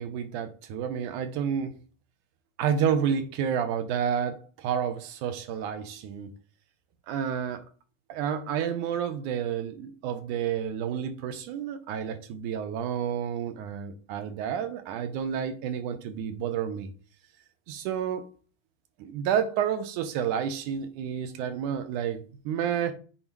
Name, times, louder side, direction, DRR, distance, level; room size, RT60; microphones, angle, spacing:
voice 1, 0.0-1.7 2.6-6.3 7.1-7.7 8.1-16.9 17.7-18.3 19.0-22.9, right 8 dB, 80° right, 2.1 m, -30 dB
8.0 x 4.0 x 4.6 m
omnidirectional pair, 3.8 m